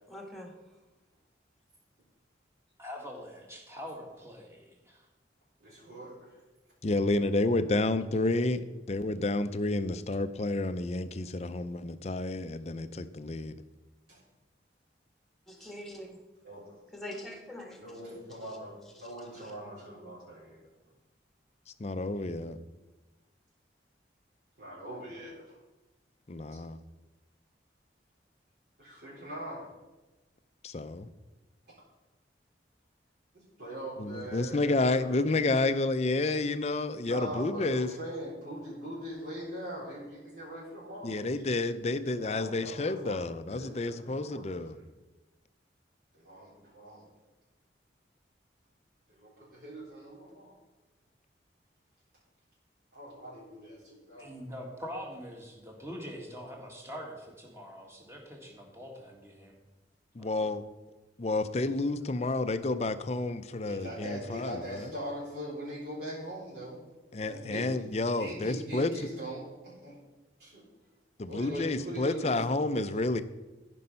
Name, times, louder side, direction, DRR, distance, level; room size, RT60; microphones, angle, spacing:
voice 1, 0.1-0.5 15.5-16.2 16.9-18.6 19.0-19.1 19.4-19.5, left 1 dB, ahead, 2 dB, 1.5 m, -44 dB
voice 2, 2.8-5.1 54.2-59.6 60.2-60.5 61.8-61.9, equal, 15° right, 0 dB, 2.0 m, -44 dB
voice 3, 5.6-6.4 14.1-14.2 16.4-16.8 17.8-18.7 19.0-20.7 22.1-22.5 24.6-25.6 28.8-29.7 33.6-35.1 37.0-41.5 42.2-44.9 46.1-47.0 49.1-50.5 52.9-54.3 61.7-61.8 63.5-66.8 67.1-67.7 68.1-70.0 70.4-70.6 71.3-72.5, right 1 dB, 55° right, -7 dB, 4.0 m, -42 dB
voice 4, 6.8-8.6 8.9-13.5 21.8-22.6 26.3-26.8 30.6-31.1 34.0-37.9 41.0-44.8 60.1-60.6 61.2-64.9 67.1-68.9 71.2-73.2, left 2 dB, 35° left, 12 dB, 0.5 m, -30 dB
13.5 x 5.5 x 5.6 m, 1.1 s
head